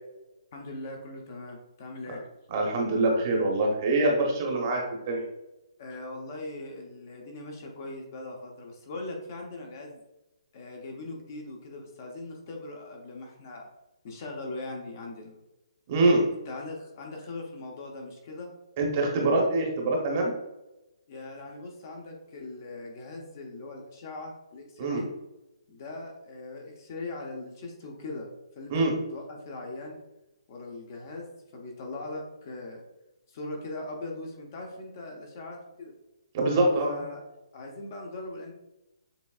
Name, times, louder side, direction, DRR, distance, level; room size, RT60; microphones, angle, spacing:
voice 1, 0.5-2.2 5.8-10.0 10.5-13.7 14.0-15.4 16.5-18.5 21.1-25.1 25.7-28.3 28.6-30.0 30.5-32.8 33.3-35.9 36.9-37.2 37.5-38.5, left 2 dB, 30° left, 1 dB, 0.7 m, -40 dB
voice 2, 2.5-5.2 15.9-16.2 18.8-20.3 24.8-25.0 28.7-28.9 36.3-37.1, right 2 dB, 25° right, 0 dB, 0.8 m, -24 dB
6.8 x 3.3 x 2.4 m, 0.96 s
hypercardioid pair, 170°, 3 cm